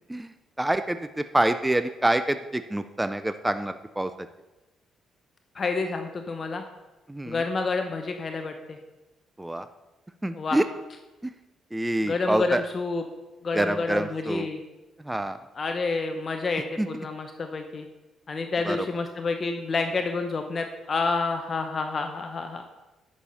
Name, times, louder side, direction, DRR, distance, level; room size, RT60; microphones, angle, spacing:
voice 1, 0.6-4.1 7.1-7.4 9.4-9.7 10.2-10.6 11.7-12.6 13.5-14.5 15.0-15.4 16.8-16.9 18.6-18.9, right 1 dB, 10° right, 10 dB, 0.4 m, -26 dB
voice 2, 5.5-6.6 7.3-8.8 10.3-10.6 12.0-13.0 13.4-14.6 15.6-17.9 18.3-22.6, left 4 dB, 40° left, 5 dB, 0.8 m, -29 dB
9.9 x 6.6 x 5.5 m, 1.1 s
cardioid pair, 90°, 0 cm